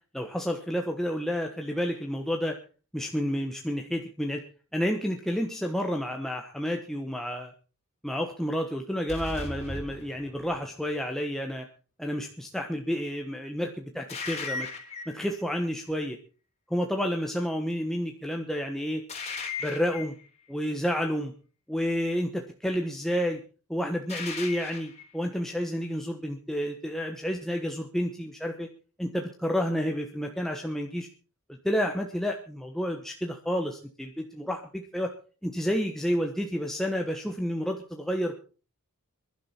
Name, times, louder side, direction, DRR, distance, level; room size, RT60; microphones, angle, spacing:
voice 1, 0.1-2.5 2.9-4.4 4.7-7.5 8.0-11.6 12.0-14.7 15.1-16.2 16.7-19.0 19.6-20.1 20.5-21.3 21.7-23.4 23.7-28.7 29.0-31.1 31.6-35.1 35.4-38.4, equal, ahead, 2 dB, 1.2 m, -30 dB
sound 1, 9.1-10.7 14.1-15.3 19.1-20.2 24.1-25.0, left 3 dB, 30° left, 3.6 m, -37 dB
21.5 x 11.5 x 4.4 m, 0.38 s
head